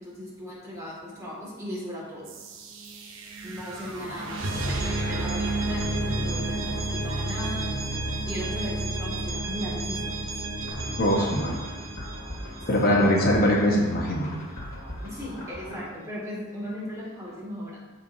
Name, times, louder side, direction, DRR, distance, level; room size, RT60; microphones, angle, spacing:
voice 1, 0.0-2.3 3.4-7.8 8.2-10.3 12.6-13.0 15.0-17.8, left 1 dB, 15° right, -6 dB, 2.1 m, -37 dB
sound 1, 2.3-13.1, right 2 dB, 65° right, 0.9 m, -31 dB
sound 2, 10.7-15.9, equal, 85° left, 1.8 m, -39 dB
voice 2, 11.0-11.6 12.7-14.3, equal, 45° left, -3 dB, 1.1 m, -22 dB
13.5 x 4.6 x 2.7 m, 1.3 s
head